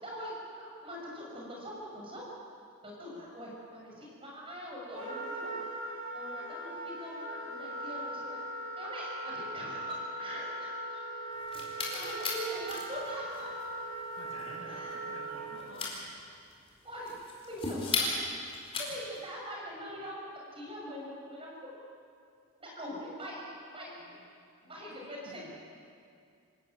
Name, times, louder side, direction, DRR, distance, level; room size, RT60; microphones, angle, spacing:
voice 1, 0.0-2.2 2.8-5.6 6.1-8.4 8.8-11.6 11.9-13.6 14.6-15.0 16.8-17.2 17.4-18.2 18.8-20.2 20.5-21.7 22.6-24.2 24.6-25.5, equal, 25° right, -3 dB, 6.4 m, -43 dB
Wind instrument woodwind instrument, 4.9-15.6, right 1 dB, 60° right, 7.4 m, -39 dB
voice 2, 11.3-11.8 14.1-16.1 24.0-25.5, left 1 dB, 60° left, -2 dB, 6.9 m, -52 dB
sound 1, 11.3-19.3, left 3 dB, 25° left, 4.3 m, -37 dB
26.0 x 14.0 x 9.1 m, 2.3 s
head